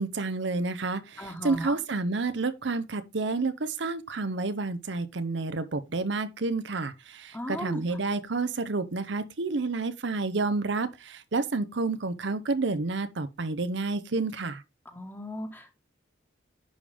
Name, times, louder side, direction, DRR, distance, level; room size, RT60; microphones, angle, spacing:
voice 1, 0.0-14.6, right 3 dB, 70° right, 0.7 m, -30 dB
voice 2, 1.2-1.8 7.3-7.8 14.9-15.8, equal, 10° left, 1.4 m, -36 dB
10.5 x 5.1 x 3.4 m
head